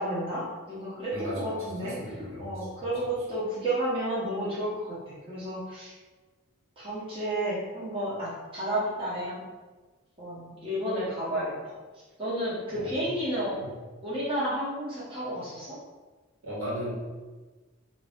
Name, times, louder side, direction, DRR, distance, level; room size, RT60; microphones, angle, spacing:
voice 1, 0.0-1.9 2.4-4.7 5.1-5.9 6.8-9.4 10.2-11.7 12.2-13.5 14.0-15.7, right 1 dB, 25° right, -9 dB, 0.9 m, -31 dB
voice 2, 1.1-3.1 12.7-13.1 13.5-13.7 16.4-16.9, equal, 70° right, -7 dB, 1.4 m, -37 dB
3.0 x 2.5 x 3.5 m, 1.3 s
head